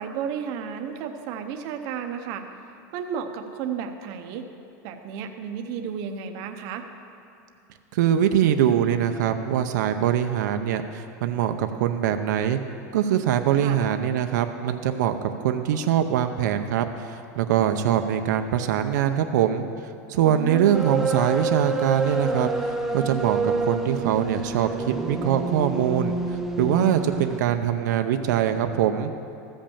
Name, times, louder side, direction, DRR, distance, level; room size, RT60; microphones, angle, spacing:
voice 1, 0.0-2.4 2.9-4.5 4.8-6.8 13.6-13.8 20.3-21.0, right 7 dB, 45° right, 6 dB, 0.7 m, -32 dB
voice 2, 7.9-12.6 12.9-19.6 20.1-22.5 22.9-29.1, right 10 dB, 80° right, 7 dB, 0.6 m, -23 dB
sound 1, 20.7-27.4, right 3 dB, 5° right, 0.4 m, -28 dB
14.5 x 5.3 x 7.2 m, 2.6 s
supercardioid pair, 175°, 9 cm